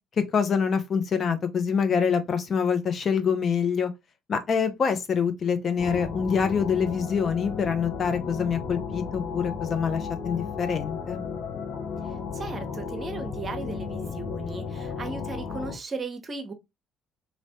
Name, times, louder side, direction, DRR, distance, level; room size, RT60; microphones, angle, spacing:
voice 1, 0.2-3.9 4.3-11.2, left 6 dB, 45° left, 0.7 m, -25 dB
sound 1, 5.8-15.8, left 6 dB, 60° left, 1.1 m, -34 dB
voice 2, 12.0-16.5, right 4 dB, 35° right, 0.8 m, -36 dB
3.1 x 2.9 x 2.8 m
hypercardioid pair, 55°, 0 cm